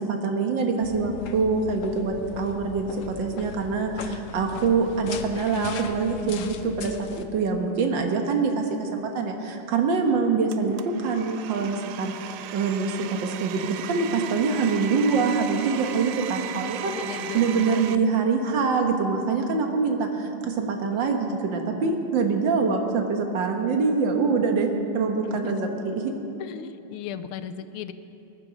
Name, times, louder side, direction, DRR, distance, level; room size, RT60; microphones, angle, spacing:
voice 1, 0.0-16.9 17.3-24.7 24.9-26.1, right 4 dB, 60° right, 3 dB, 1.9 m, -25 dB
sound 1, 0.8-7.2, left 6 dB, 70° left, 0.7 m, -38 dB
Domestic sounds home sounds, 10.5-18.0, right 10 dB, 85° right, 1.5 m, -37 dB
voice 2, 16.8-18.2 21.1-21.4 25.2-25.6 26.4-27.9, left 9 dB, 85° left, 11 dB, 1.5 m, -37 dB
19.5 x 11.5 x 5.1 m, 2.9 s
omnidirectional pair, 2.3 m